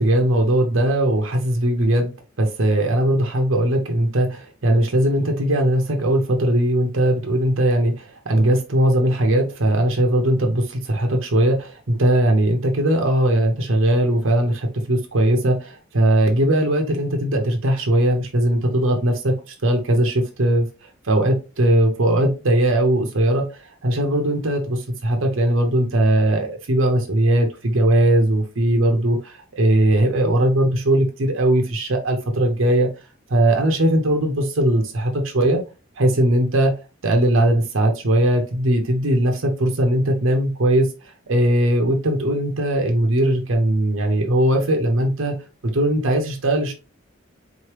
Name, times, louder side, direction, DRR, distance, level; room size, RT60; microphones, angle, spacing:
voice 1, 0.0-2.1 2.4-20.7 21.0-32.9 33.3-35.6 36.0-36.7 37.0-45.3 45.6-46.7, right 1 dB, 75° right, 3 dB, 0.8 m, -19 dB
4.1 x 3.0 x 3.2 m, 0.31 s
head